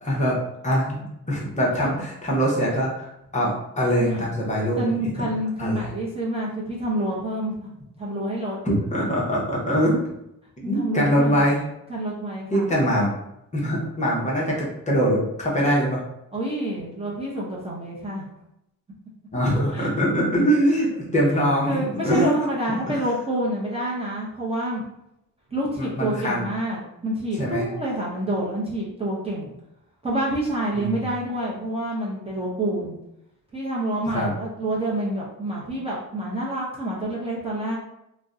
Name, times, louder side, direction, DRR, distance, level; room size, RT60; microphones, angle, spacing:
voice 1, 0.0-5.1 5.6-5.9 8.6-10.0 10.6-11.6 12.5-13.1 13.5-16.0 19.3-22.3 22.9-23.0 25.8-26.4 27.4-27.7 30.7-31.1 34.1-34.3, equal, 20° left, -4 dB, 0.7 m, -23 dB
voice 2, 4.0-4.3 4.8-7.7 8.0-8.6 10.6-11.5 11.9-12.7 16.3-18.2 19.7-19.9 21.6-24.8 25.5-29.5 30.0-33.0 33.5-37.8, right 1 dB, 15° right, -5 dB, 0.6 m, -28 dB
2.6 x 2.1 x 3.6 m, 0.83 s
cardioid pair, 130°, 34 cm